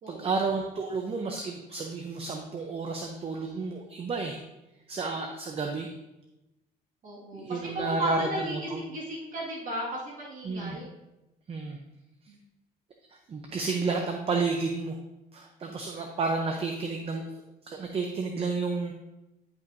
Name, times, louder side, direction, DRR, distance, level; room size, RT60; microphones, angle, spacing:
voice 1, 0.1-4.4 4.9-5.9 7.3-8.8 10.4-10.8 11.5-11.8 13.3-15.0 15.3-17.2 17.6-18.9, right 4 dB, 35° right, 3 dB, 0.8 m, -31 dB
voice 2, 7.0-10.9 12.3-12.4, right 1 dB, 50° right, -4 dB, 2.1 m, -35 dB
10.5 x 5.4 x 2.7 m, 0.96 s
cardioid pair, 110°, 17 cm